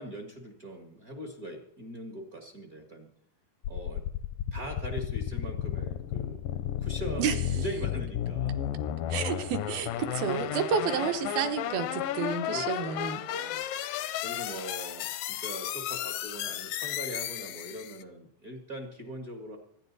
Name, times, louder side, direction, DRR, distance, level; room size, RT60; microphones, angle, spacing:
voice 1, 0.0-3.1 3.7-4.0 4.5-6.4 6.8-8.6 9.3-9.5 10.1-10.4 12.5-13.6 14.2-19.6, right 1 dB, 50° right, 3 dB, 1.0 m, -41 dB
sound 1, 3.6-18.0, left 11 dB, 80° left, 2.0 m, -33 dB
voice 2, 9.1-13.2, right 6 dB, 70° right, 6 dB, 2.8 m, -30 dB
25.0 x 10.5 x 4.1 m, 0.71 s
omnidirectional pair, 4.8 m